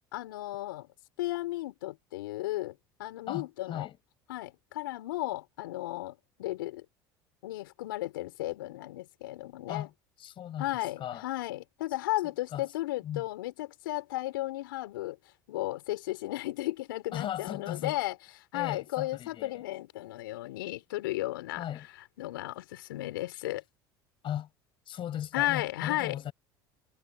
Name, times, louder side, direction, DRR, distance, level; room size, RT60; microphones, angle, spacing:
voice 1, 0.1-0.9 1.2-3.9 4.3-6.8 7.4-9.9 10.6-15.2 15.5-18.2 18.5-21.6 22.2-23.6 25.3-26.2, left 17 dB, 80° left, 4.7 m, -34 dB
voice 2, 3.3-4.0 9.7-9.9 10.2-11.3 12.5-12.7 13.0-13.2 17.1-18.0 18.5-19.6 21.6-21.9 24.2-24.5 24.9-26.3, left 11 dB, 50° left, 5.5 m, -37 dB
hypercardioid pair, 75°, 11 cm